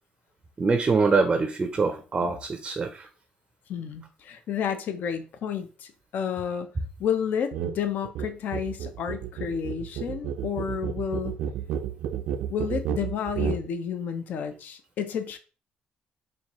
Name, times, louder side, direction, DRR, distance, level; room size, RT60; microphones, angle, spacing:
voice 1, 0.6-3.1, right 4 dB, 25° right, 7 dB, 0.4 m, -24 dB
voice 2, 3.7-6.7 7.0-11.4 12.5-15.4, left 7 dB, 65° left, 9 dB, 0.5 m, -31 dB
sound 1, 7.5-7.8 8.0-13.7, right 8 dB, 85° right, 0.4 m, -31 dB
4.3 x 2.6 x 2.9 m, 0.35 s
cardioid pair, 120°, 3 cm